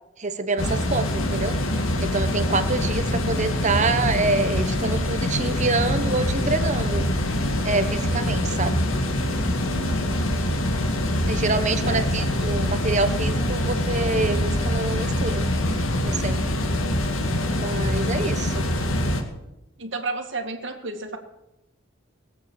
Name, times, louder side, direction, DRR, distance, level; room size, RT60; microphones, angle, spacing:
voice 1, 0.2-7.1 7.6-8.8 11.3-15.4 16.0-16.4 17.6-18.6, right 3 dB, 35° right, 9 dB, 1.1 m, -26 dB
sound 1, 0.6-19.2, left 1 dB, 80° left, 2.0 m, -24 dB
voice 2, 9.7-10.1 11.7-12.5 19.8-21.2, right 3 dB, 60° right, 4 dB, 2.1 m, -33 dB
20.0 x 8.4 x 7.1 m, 0.91 s
head